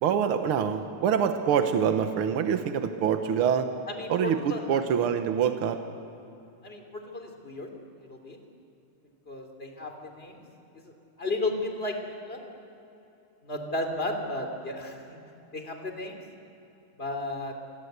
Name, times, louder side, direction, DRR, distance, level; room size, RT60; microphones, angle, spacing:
voice 1, 0.0-3.7 4.1-5.8, right 8 dB, 80° right, 7 dB, 2.0 m, -25 dB
voice 2, 3.9-4.8 6.6-7.7 8.0-8.4 9.3-10.4 10.7-10.9 11.2-12.4 13.4-15.2 15.5-16.2 17.0-17.5, left 2 dB, 25° left, 4 dB, 3.5 m, -34 dB
29.0 x 23.0 x 8.2 m, 2.9 s
omnidirectional pair, 2.3 m